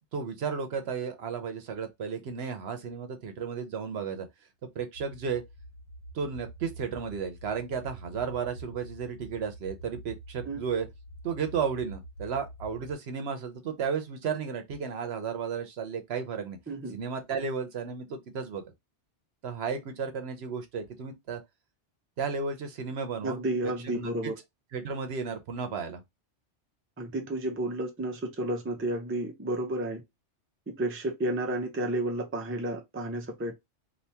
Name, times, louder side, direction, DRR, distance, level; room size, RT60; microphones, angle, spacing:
voice 1, 0.1-4.3 4.7-5.4 6.1-10.9 11.2-16.6 16.9-18.6 19.4-21.4 22.2-23.4 23.9-24.3 24.7-26.0, right 6 dB, 65° right, 0.9 m, -33 dB
sound 1, 4.9-12.9, right 1 dB, 65° left, 1.1 m, -46 dB
voice 2, 23.2-24.3 27.0-30.0 30.7-33.5, right 1 dB, 15° right, 0.4 m, -31 dB
2.8 x 2.6 x 3.4 m
omnidirectional pair, 1.2 m